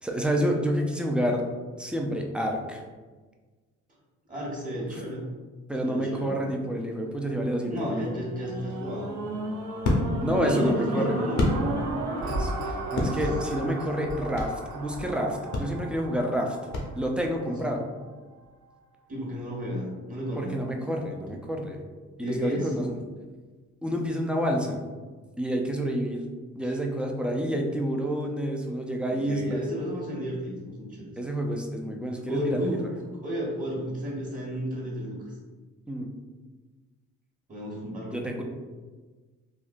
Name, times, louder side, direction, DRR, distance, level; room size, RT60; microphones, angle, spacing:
voice 1, 0.0-1.5 1.8-2.8 5.7-8.1 10.2-11.1 12.4-16.6 16.9-17.8 20.4-21.8 22.2-22.9 23.8-24.8 25.4-26.3 26.5-29.6 31.2-32.9 35.9-36.1 38.1-38.4, equal, 5° right, 1 dB, 0.3 m, -28 dB
voice 2, 4.3-5.3 5.8-6.4 7.7-9.2 10.4-11.4 13.1-13.2 17.4-17.6 19.1-20.6 22.2-22.7 26.6-26.7 29.1-31.1 32.3-32.8 33.1-35.3 37.5-38.2, equal, 25° right, -5 dB, 1.1 m, -33 dB
sound 1, 7.1-17.4 18.0-18.1, right 1 dB, 70° right, 0.7 m, -34 dB
sound 2, 8.7-12.2 12.5-14.7 15.0-15.2 15.5-17.3, left 1 dB, 70° left, 0.7 m, -30 dB
3.6 x 2.1 x 2.5 m, 1.4 s
cardioid pair, 90°, 30 cm